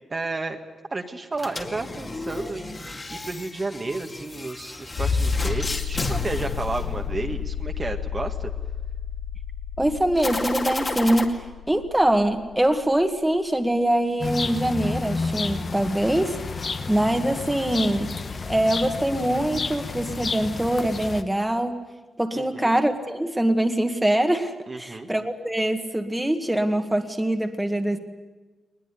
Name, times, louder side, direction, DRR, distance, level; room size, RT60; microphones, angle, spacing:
voice 1, 0.1-0.6 0.9-8.5 22.3-22.7 24.7-25.1, right 3 dB, 30° right, 4 dB, 1.7 m, -32 dB
sound 1, 1.3-7.5 10.2-11.2, left 2 dB, 30° left, 2.3 m, -32 dB
sound 2, 4.9-13.4 14.9-15.0, left 7 dB, 65° left, 0.9 m, -30 dB
voice 2, 9.8-21.8 22.2-28.0, right 1 dB, 10° right, 5 dB, 1.8 m, -24 dB
sound 3, 14.2-21.2, left 4 dB, 45° left, 1.3 m, -31 dB
21.5 x 20.0 x 9.9 m, 1.2 s
cardioid pair, 105°, 0 cm